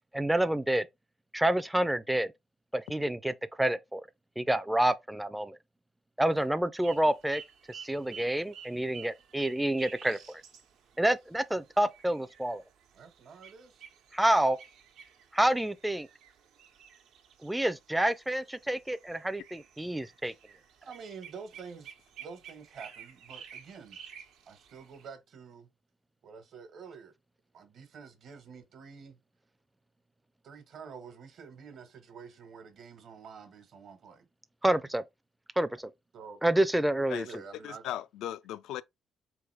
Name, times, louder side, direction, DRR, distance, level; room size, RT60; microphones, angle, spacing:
voice 1, 0.1-0.9 1.3-2.3 2.7-4.0 4.4-5.6 6.2-7.4 7.7-10.4 11.0-12.6 14.1-14.6 15.3-16.1 17.4-20.3 34.6-35.0 35.6-35.9 36.4-37.2, right 1 dB, 5° right, 0.4 m, -28 dB
sound 1, 6.7-25.1, right 7 dB, 90° right, 1.0 m, -52 dB
voice 2, 12.9-13.8 20.8-24.0 24.5-25.7 26.2-27.1 27.5-29.2 30.4-34.3 36.1-36.4 37.2-37.8, right 5 dB, 65° right, 1.2 m, -48 dB
voice 3, 37.1-38.8, left 12 dB, 85° left, 0.3 m, -38 dB
3.8 x 3.5 x 3.2 m
cardioid pair, 90°, 0 cm